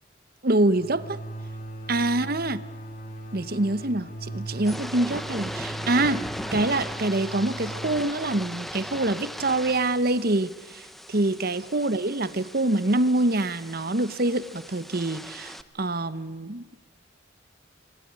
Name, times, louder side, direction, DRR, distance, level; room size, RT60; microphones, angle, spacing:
voice 1, 0.4-1.2 1.9-2.6 3.3-6.2 6.5-16.6, right 2 dB, 50° right, 14 dB, 1.1 m, -25 dB
sound 1, 0.7-10.2, right 2 dB, 40° left, 3.3 m, -39 dB
sound 2, 4.5-15.6, equal, ahead, 1.0 m, -38 dB
28.5 x 21.5 x 9.7 m, 1.3 s
head